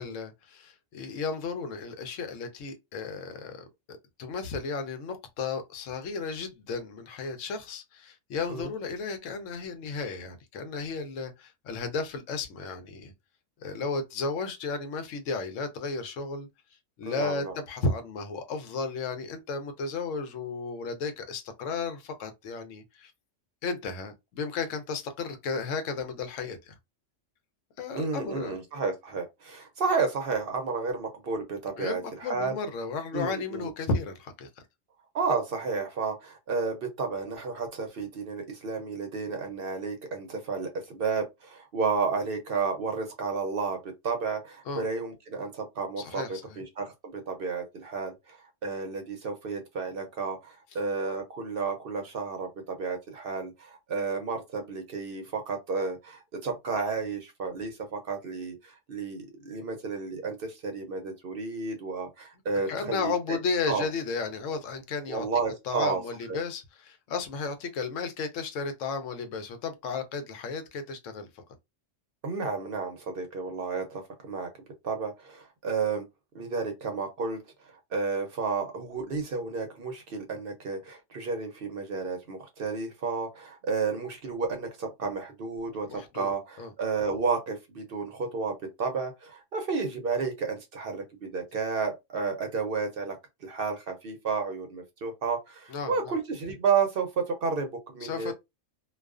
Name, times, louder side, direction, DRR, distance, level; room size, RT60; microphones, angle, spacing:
voice 1, 0.0-13.1 13.6-16.5 17.0-23.1 23.6-26.7 27.8-28.6 31.8-34.5 44.7-44.8 46.0-46.6 62.7-65.3 65.6-71.4 85.8-86.3 86.6-86.7 95.7-96.1 98.0-98.3, left 4 dB, 85° left, 1.0 m, -34 dB
voice 2, 17.0-17.5 27.9-32.6 33.1-33.7 35.1-63.4 63.7-63.9 65.1-66.0 66.3-66.4 72.2-74.5 74.8-76.0 76.3-98.3, right 4 dB, 60° right, 0.7 m, -32 dB
2.4 x 2.3 x 2.3 m
omnidirectional pair, 1.3 m